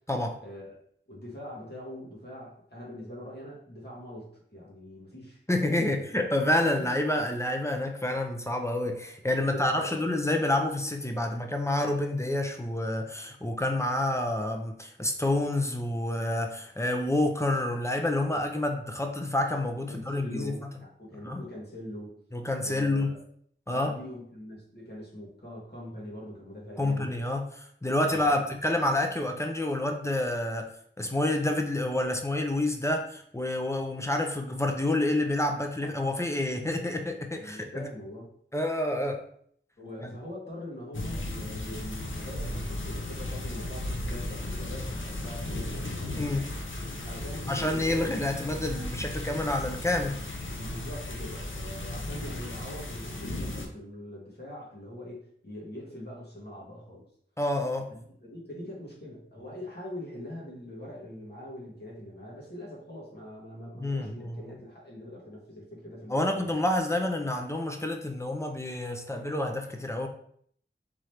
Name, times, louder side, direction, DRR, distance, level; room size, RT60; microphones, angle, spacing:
voice 1, 0.4-0.8 1.1-5.9 6.6-6.9 9.2-9.9 19.9-22.2 22.6-23.2 23.7-27.1 28.1-28.4 37.4-38.3 39.8-45.9 47.0-48.0 50.6-57.0 57.9-66.5, left 1 dB, 55° left, -5 dB, 1.5 m, -43 dB
voice 2, 5.5-20.5 21.2-21.4 22.3-23.1 23.7-23.9 26.8-37.9 38.5-39.2 40.0-40.1 46.2-46.5 47.5-50.2 57.4-57.9 63.8-64.5 66.1-70.1, left 1 dB, 15° left, 4 dB, 0.5 m, -28 dB
sound 1, 40.9-53.7, left 1 dB, 75° left, 0.6 m, -35 dB
3.7 x 3.0 x 3.2 m, 0.63 s
wide cardioid pair, 40°, 20 cm